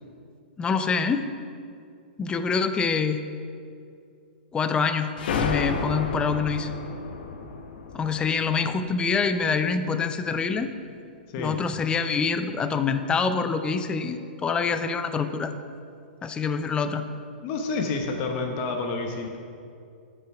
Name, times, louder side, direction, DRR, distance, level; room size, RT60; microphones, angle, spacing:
voice 1, 0.6-1.3 2.2-3.2 4.5-6.7 7.9-10.7 11.4-15.5 16.2-17.0, left 5 dB, 15° left, 9 dB, 0.5 m, -26 dB
sound 1, 5.2-9.6, left 4 dB, 65° left, 0.9 m, -31 dB
voice 2, 17.4-19.4, left 3 dB, 40° left, 3 dB, 1.0 m, -29 dB
9.8 x 5.7 x 4.6 m, 2.4 s
hypercardioid pair, 120°, 5 cm